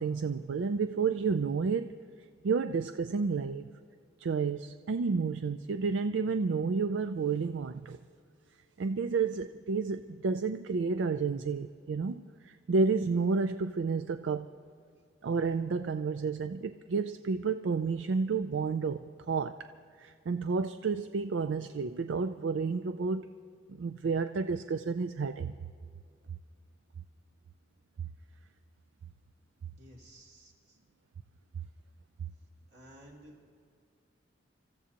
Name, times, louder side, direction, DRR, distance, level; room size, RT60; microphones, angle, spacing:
voice 1, 0.0-2.0 2.4-3.7 4.2-8.0 8.8-14.5 15.2-19.7 20.0-23.3 23.7-25.5, right 4 dB, 85° right, 10 dB, 0.4 m, -31 dB
voice 2, 29.8-30.8 32.7-33.4, right 1 dB, 60° right, -3 dB, 3.3 m, -54 dB
27.0 x 15.0 x 2.9 m, 2.3 s
head